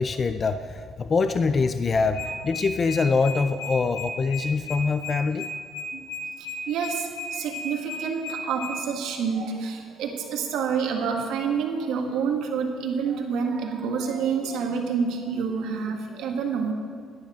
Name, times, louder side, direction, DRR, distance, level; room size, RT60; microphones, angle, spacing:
voice 1, 0.0-5.5, left 4 dB, 25° left, 10 dB, 0.3 m, -24 dB
sound 1, 2.1-8.7, left 3 dB, 60° left, 1.2 m, -35 dB
voice 2, 6.7-16.7, right 6 dB, 75° right, 1 dB, 1.8 m, -28 dB
11.5 x 10.5 x 5.0 m, 2.1 s
cardioid pair, 165°, 0 cm